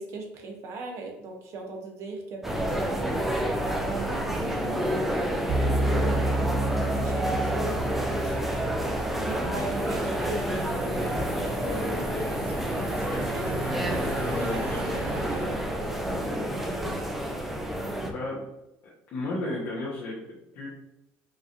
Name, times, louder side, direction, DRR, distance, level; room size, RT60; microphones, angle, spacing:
voice 1, 0.0-8.4 8.9-13.5 13.8-14.0 14.4-16.7 17.1-17.2, right 3 dB, 55° right, 2 dB, 0.9 m, -40 dB
sound 1, 2.4-18.1, equal, 5° right, 0.5 m, -29 dB
sound 2, 5.5-12.6, right 2 dB, 85° right, 0.6 m, -31 dB
sound 3, 9.8-15.5, right 1 dB, 25° right, 0.9 m, -38 dB
voice 2, 11.5-13.3 14.3-14.9 16.2-16.5 18.0-18.4 19.1-20.7, left 2 dB, 60° left, -6 dB, 1.1 m, -35 dB
4.8 x 2.7 x 2.6 m, 0.88 s
cardioid pair, 115°, 6 cm